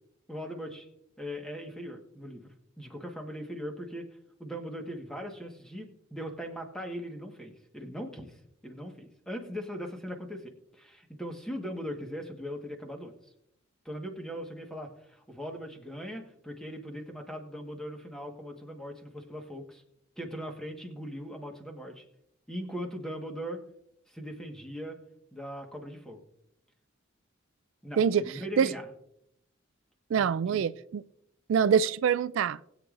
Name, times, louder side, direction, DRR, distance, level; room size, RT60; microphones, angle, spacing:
voice 1, 0.3-0.9 1.2-4.1 4.4-13.1 13.8-19.8 20.2-22.0 22.5-23.6 24.1-25.0 25.3-26.2 27.8-28.9 30.2-30.7, equal, 5° left, 1.4 m, -40 dB
voice 2, 30.1-31.0 31.5-32.6, right 7 dB, 75° right, 0.3 m, -25 dB
20.5 x 8.2 x 2.5 m
head